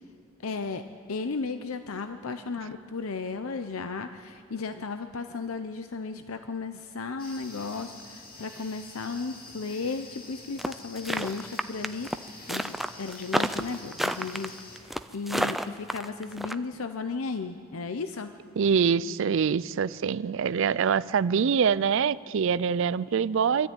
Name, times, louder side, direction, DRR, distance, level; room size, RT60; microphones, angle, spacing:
voice 1, 0.4-0.8 1.1-12.1 12.5-18.3, left 4 dB, 85° left, 9 dB, 0.7 m, -35 dB
sound 1, 7.2-14.8, left 2 dB, 45° left, 2.3 m, -47 dB
sound 2, 10.6-16.5, equal, ahead, 0.4 m, -30 dB
voice 2, 18.6-23.7, right 6 dB, 65° right, 18 dB, 0.4 m, -24 dB
24.0 x 13.0 x 9.1 m, 2.5 s
head